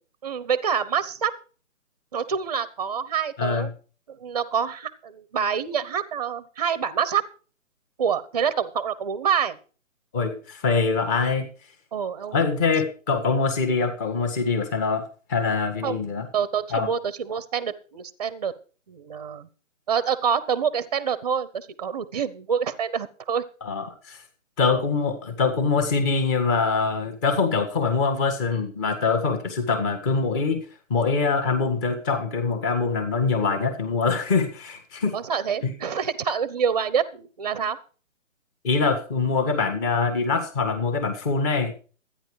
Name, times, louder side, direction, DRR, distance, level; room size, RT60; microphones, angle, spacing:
voice 1, 0.2-1.3 2.1-3.7 4.1-7.2 8.0-9.6 11.9-12.5 15.8-16.1 16.3-18.5 18.9-19.5 19.9-23.4 35.1-37.8, right 7 dB, 30° right, 16 dB, 1.0 m, -26 dB
voice 2, 3.4-3.7 10.1-11.4 12.3-15.0 15.3-16.3 16.7-16.9 23.6-24.2 24.6-30.6 30.9-35.1 35.6-35.7 38.6-41.7, left 4 dB, 15° left, 6 dB, 1.7 m, -24 dB
13.5 x 9.9 x 4.8 m, 0.38 s
hypercardioid pair, 160°, 40 cm